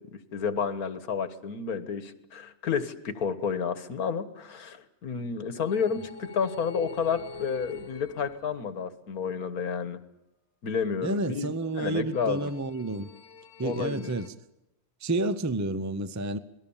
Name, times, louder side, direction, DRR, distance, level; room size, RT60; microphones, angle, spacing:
voice 1, 0.1-10.0 10.6-12.5 13.6-14.1, left 6 dB, 90° left, 1.9 m, -31 dB
sound 1, 5.7-8.9 11.7-14.3, left 4 dB, 65° left, 1.5 m, -46 dB
voice 2, 11.0-13.1 13.6-14.3 15.0-16.4, right 2 dB, 15° right, 0.6 m, -30 dB
27.0 x 19.5 x 7.2 m
omnidirectional pair, 1.5 m